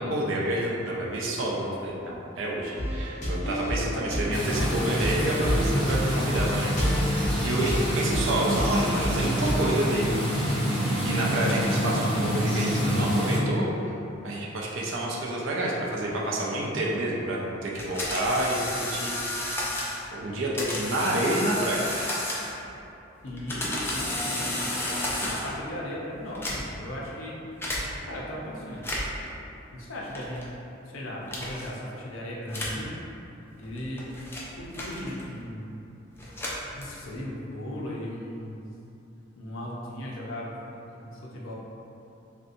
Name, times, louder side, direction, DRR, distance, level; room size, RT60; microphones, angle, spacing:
voice 1, 0.0-10.1 11.0-13.7 14.2-19.6 20.1-22.1, right 1 dB, 70° right, -3 dB, 0.5 m, -29 dB
sound 1, 2.8-9.7, equal, 40° left, 0.7 m, -30 dB
sound 2, 4.3-13.4, equal, 15° right, 1.4 m, -27 dB
sound 3, 17.8-20.0 20.6-22.7 23.3-25.6 26.3-26.9 27.6-27.8 28.7-29.3 30.1-30.5 31.3-31.7 32.5-32.8 33.6-35.4 36.1-37.2, left 1 dB, 10° left, 0.4 m, -32 dB
voice 2, 23.2-24.6 25.3-27.4 28.1-28.8 29.7-30.5 30.9-32.9 33.6-34.1 34.6-35.6 36.7-38.5 39.4-41.5, left 1 dB, 75° left, -4 dB, 0.6 m, -37 dB
3.3 x 2.6 x 2.6 m, 2.8 s
head